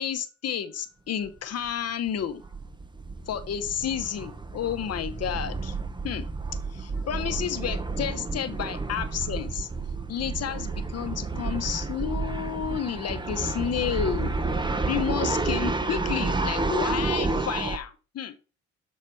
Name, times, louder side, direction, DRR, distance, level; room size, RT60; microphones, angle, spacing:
voice 1, 0.0-2.4 3.3-5.8 6.0-6.3 6.7-9.7 10.1-14.3 14.9-18.4, left 9 dB, 55° left, 0.9 m, -31 dB
sound 1, 1.2-1.4 1.6-1.7 2.1-17.8, right 3 dB, 15° right, 0.8 m, -30 dB
7.3 x 4.1 x 4.5 m
cardioid pair, 90°, 30 cm